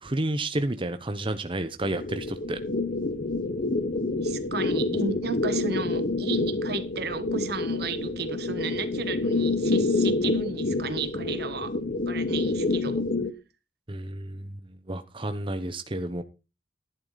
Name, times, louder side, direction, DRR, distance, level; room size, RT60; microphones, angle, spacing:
voice 1, 0.0-2.6 13.9-14.5 14.9-16.2, right 1 dB, 30° right, 1.0 m, -31 dB
sound 1, 1.8-13.3, left 2 dB, 50° left, 1.1 m, -27 dB
voice 2, 4.2-11.8 12.1-13.0, right 4 dB, 65° right, 1.5 m, -34 dB
12.5 x 11.0 x 4.1 m
head